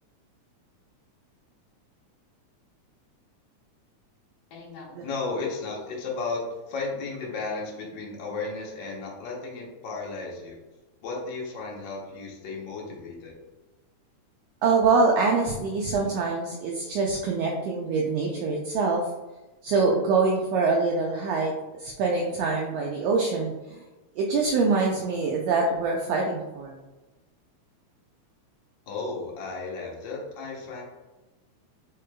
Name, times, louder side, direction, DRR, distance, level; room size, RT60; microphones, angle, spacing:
voice 1, 4.5-10.6 11.0-13.3 28.9-30.8, left 3 dB, 85° left, -3 dB, 1.0 m, -34 dB
voice 2, 14.6-19.0 19.6-21.5 21.8-23.8 24.1-26.7, right 4 dB, 80° right, -1 dB, 1.5 m, -24 dB
4.9 x 3.7 x 2.2 m, 1.1 s
omnidirectional pair, 3.4 m